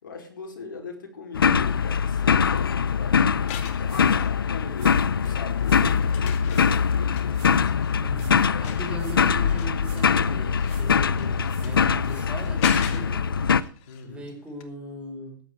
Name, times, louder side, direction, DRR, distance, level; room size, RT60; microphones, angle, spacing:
voice 1, 0.0-7.4 8.5-9.1 13.9-14.3, left 4 dB, 70° left, 3 dB, 4.9 m, -40 dB
sound 1, 1.3-13.6, left 6 dB, 85° left, 0.7 m, -22 dB
sound 2, 3.5-4.9 5.3-14.3 14.6-14.7, left 9 dB, 40° left, 2.1 m, -41 dB
sound 3, 3.8-4.3 4.7-6.0 6.5-6.9 7.3-7.7 8.1-8.6 8.9-9.4 9.8-10.2 10.6-11.1 11.4-12.7, right 8 dB, 40° right, 5.0 m, -52 dB
voice 2, 8.0-13.3 14.0-15.4, right 2 dB, 10° right, 2 dB, 5.0 m, -39 dB
14.5 x 11.0 x 4.7 m, 0.44 s
hypercardioid pair, 130°, 12 cm